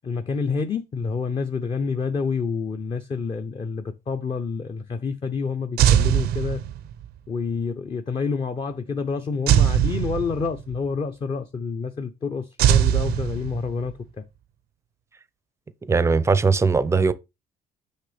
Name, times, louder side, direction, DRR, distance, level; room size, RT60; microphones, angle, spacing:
voice 1, 0.0-6.6 7.3-14.2, left 5 dB, 30° left, 0.6 m, -28 dB
sound 1, 5.8-7.0 9.5-10.7 12.6-13.9, right 10 dB, 70° right, 0.5 m, -20 dB
voice 2, 15.9-17.1, right 4 dB, 15° right, 0.5 m, -19 dB
6.5 x 5.3 x 3.4 m
cardioid pair, 110°, 17 cm